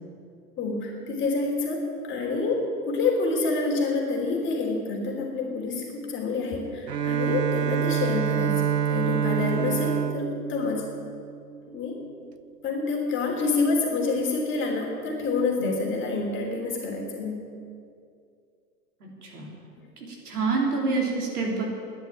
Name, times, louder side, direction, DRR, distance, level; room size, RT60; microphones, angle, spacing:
voice 1, 0.6-8.6 8.9-10.8 11.7-12.0 12.6-17.4, left 3 dB, 25° left, 0 dB, 3.1 m, -27 dB
Bowed string instrument, 6.9-11.6, right 9 dB, 90° right, 0.6 m, -27 dB
voice 2, 19.0-19.5 20.0-21.6, right 4 dB, 70° right, -2 dB, 3.8 m, -27 dB
12.0 x 10.5 x 8.7 m, 2.3 s
figure-of-eight pair, 95°, 47 cm